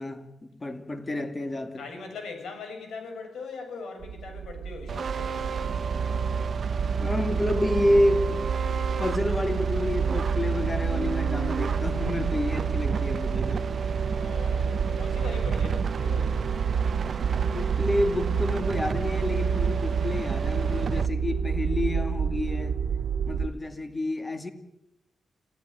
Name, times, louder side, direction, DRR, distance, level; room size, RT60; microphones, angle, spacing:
voice 1, 0.0-1.9 7.0-8.4 9.0-13.7 17.5-22.8 23.3-24.5, left 1 dB, 20° left, 2.3 m, -29 dB
voice 2, 1.8-5.6 14.1-16.4, left 4 dB, 85° left, 7.2 m, -40 dB
sound 1, 4.0-23.5, right 6 dB, 90° right, 1.3 m, -28 dB
sound 2, 4.9-21.1, right 6 dB, 45° right, 0.8 m, -34 dB
27.0 x 17.0 x 9.2 m
wide cardioid pair, 140°, 0 cm